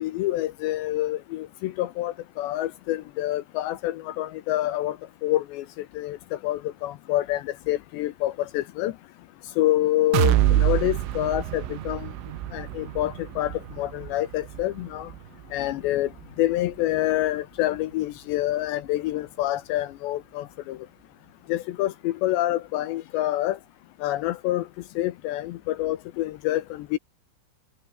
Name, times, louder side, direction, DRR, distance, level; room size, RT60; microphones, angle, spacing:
voice 1, 0.0-5.0 5.2-5.6 6.0-6.2 6.4-8.9 9.6-12.1 12.5-15.1 15.5-16.1 16.4-20.8 21.5-23.6 24.0-24.6 25.0-27.0, left 15 dB, 75° left, 2.8 m, -27 dB
sound 1, 10.1-17.9 18.3-18.4 18.9-19.0, right 13 dB, 85° right, 4.3 m, -28 dB
omnidirectional pair, 5.6 m